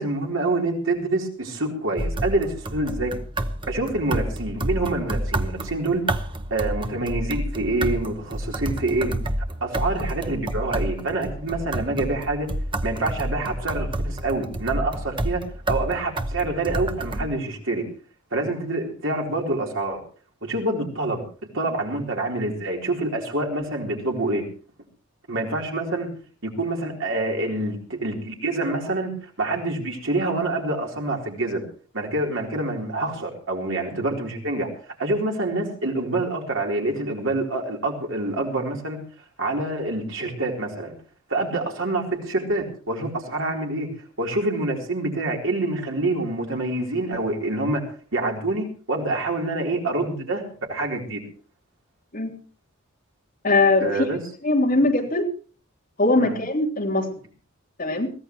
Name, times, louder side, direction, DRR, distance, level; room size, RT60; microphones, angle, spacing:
voice 1, 0.0-3.1 3.7-6.1 6.5-9.1 9.6-12.5 12.8-15.4 15.7-17.8 18.3-20.0 20.4-21.2 21.5-24.4 25.3-26.1 26.4-31.6 31.9-34.7 35.0-39.0 39.4-40.9 41.3-43.9 44.2-47.8 48.1-50.4 50.7-51.2 53.8-54.2 56.2-56.4, right 2 dB, 60° right, 0 dB, 4.0 m, -26 dB
sound 1, 2.0-17.2, right 1 dB, 25° right, 0.9 m, -29 dB
voice 2, 53.4-54.0 54.4-55.2 56.0-57.1 57.8-58.1, left 2 dB, 40° left, 0 dB, 3.4 m, -21 dB
22.5 x 15.5 x 3.2 m, 0.40 s
head